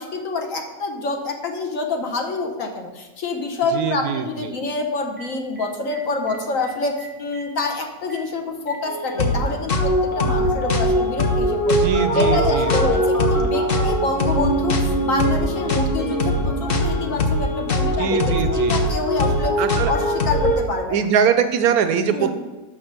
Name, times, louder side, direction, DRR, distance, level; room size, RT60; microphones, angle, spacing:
voice 1, 0.0-6.9 7.2-11.9 12.1-19.6 19.8-21.0 22.1-22.3, left 3 dB, 60° left, 3 dB, 1.3 m, -27 dB
voice 2, 3.7-4.6 11.7-13.0 18.0-18.8 19.6-19.9 20.9-22.4, right 7 dB, 75° right, 9 dB, 1.1 m, -22 dB
Telephone, 5.2-5.3 5.6-5.7 5.9-6.0 6.3-6.7 7.0-7.1 7.3-7.7 8.1-8.2 8.7-9.3 10.1-10.3 10.6-11.3 11.9-14.6 14.9-15.2 15.5-15.8 16.1-16.4 16.7-17.0 17.3-17.6 17.9-18.2 18.5-19.4 19.7-20.1 20.3-20.6, equal, 15° left, 1.2 m, -32 dB
sound 1, 9.2-20.6, equal, 45° left, 0.9 m, -21 dB
6.4 x 6.0 x 5.9 m, 1.1 s
omnidirectional pair, 1.7 m